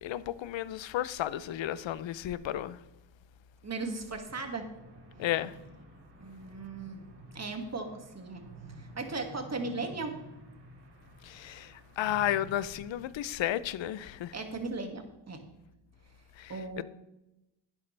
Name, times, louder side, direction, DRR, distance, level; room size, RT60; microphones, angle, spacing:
voice 1, 0.0-2.8 5.2-5.5 11.2-14.3 16.4-16.8, left 12 dB, 70° left, 0.7 m, -33 dB
voice 2, 3.6-4.7 6.2-7.0 7.3-8.5 8.8-10.2 14.3-15.5 16.5-16.8, right 3 dB, 35° right, 2.1 m, -37 dB
sound 1, 4.3-12.9, right 1 dB, 60° right, 3.3 m, -51 dB
12.0 x 9.7 x 3.3 m
cardioid pair, 70°, 47 cm